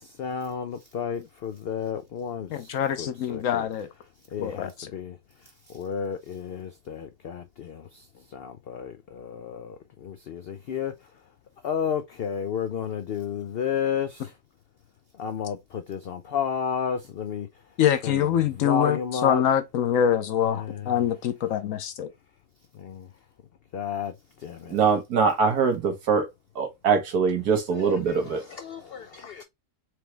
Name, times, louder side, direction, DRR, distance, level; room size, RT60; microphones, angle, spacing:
voice 1, 0.2-2.7 3.0-3.7 4.3-5.2 5.7-7.9 8.3-9.8 10.0-10.9 11.6-14.3 15.2-17.5 18.0-18.3 18.6-19.4 20.5-20.9 22.8-23.1 23.7-24.1 24.4-24.8 27.8-29.4, left 7 dB, 90° left, 0.5 m, -32 dB
voice 2, 2.5-3.9 4.4-4.9 17.8-22.1, left 9 dB, 70° left, 1.0 m, -25 dB
voice 3, 24.7-26.3 26.5-28.4, right 5 dB, 85° right, 1.8 m, -23 dB
4.6 x 3.0 x 3.3 m
omnidirectional pair, 1.6 m